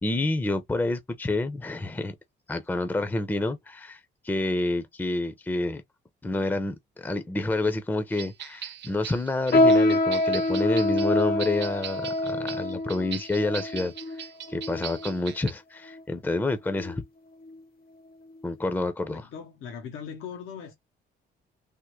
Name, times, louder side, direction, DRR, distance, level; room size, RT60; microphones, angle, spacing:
voice 1, 0.0-2.1 2.5-5.8 6.2-17.0 18.4-19.3, left 2 dB, 10° left, 0.5 m, -28 dB
sound 1, 8.1-15.5, right 10 dB, 65° right, 0.6 m, -40 dB
sound 2, 9.5-15.2 15.9-16.0 16.7-17.0 17.4-17.6 18.3-18.4, left 2 dB, 50° left, 0.8 m, -25 dB
voice 2, 19.0-20.7, left 7 dB, 90° left, 0.9 m, -40 dB
3.5 x 2.1 x 3.0 m
cardioid pair, 90°, 20 cm